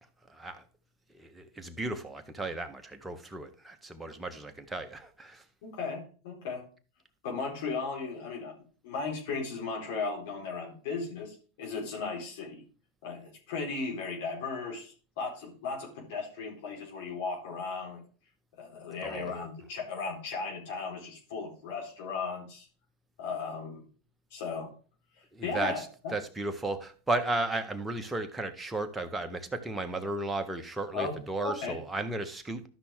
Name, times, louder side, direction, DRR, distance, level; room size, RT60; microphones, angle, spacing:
voice 1, 0.3-0.6 1.1-5.4 19.0-19.5 25.3-25.9 26.1-32.7, right 2 dB, 10° right, 1.5 m, -34 dB
voice 2, 5.6-6.6 7.2-8.5 8.8-12.6 13.0-18.0 18.6-22.7 23.2-23.8 24.3-24.7 25.2-26.1 30.9-31.2 31.4-31.8, left 4 dB, 70° left, 4.3 m, -36 dB
12.5 x 5.9 x 3.7 m
hypercardioid pair, 105°, 0 cm